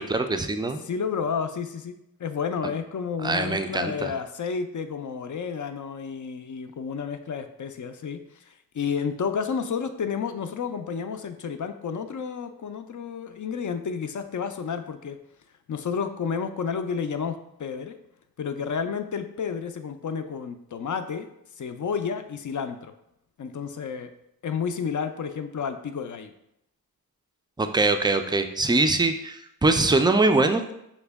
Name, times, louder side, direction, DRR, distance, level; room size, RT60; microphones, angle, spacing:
voice 1, 0.0-0.8 3.2-4.1 27.6-30.7, right 2 dB, 15° right, 7 dB, 0.3 m, -23 dB
voice 2, 0.8-15.2 15.7-18.0 18.4-21.3 21.6-22.9 23.4-24.1 24.4-26.3, left 6 dB, 55° left, 9 dB, 0.4 m, -31 dB
5.8 x 2.1 x 3.4 m, 0.81 s
wide cardioid pair, 50°, 37 cm